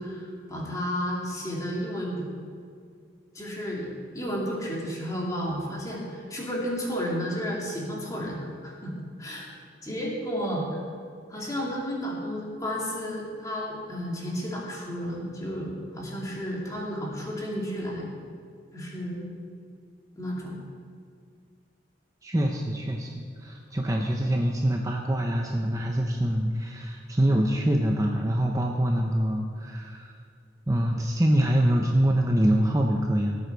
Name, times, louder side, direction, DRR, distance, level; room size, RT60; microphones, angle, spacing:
voice 1, 0.0-2.3 3.3-8.9 9.2-9.5 9.8-10.7 11.3-18.1 18.7-19.3 20.2-20.6, equal, 20° left, -3 dB, 2.5 m, -32 dB
voice 2, 22.2-30.1 30.7-33.4, right 1 dB, 20° right, 1 dB, 0.7 m, -25 dB
18.5 x 8.1 x 4.6 m, 2.3 s
head